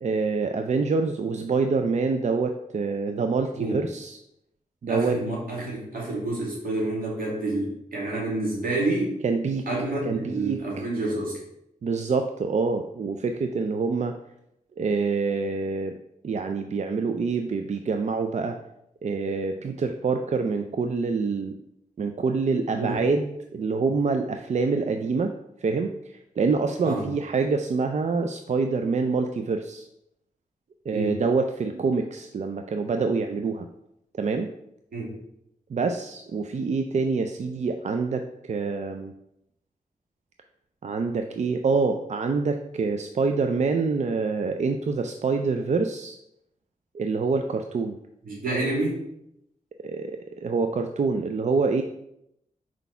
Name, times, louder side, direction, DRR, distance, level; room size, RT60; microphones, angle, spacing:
voice 1, 0.0-4.2 4.8-5.2 9.2-9.7 10.0-10.8 11.8-14.1 14.8-16.0 16.2-18.6 19.0-21.5 22.0-25.3 25.6-29.9 30.9-33.7 34.1-34.5 35.7-39.1 40.8-46.2 46.9-48.0 49.8-51.8, right 4 dB, 55° right, 6 dB, 0.4 m, -26 dB
voice 2, 4.9-9.1 9.7-11.4 22.7-23.0 26.8-27.1 30.9-31.2 34.9-35.1 48.2-49.0, right 2 dB, 80° right, -4 dB, 2.4 m, -28 dB
4.6 x 4.0 x 5.6 m, 0.80 s
cardioid pair, 70°, 14 cm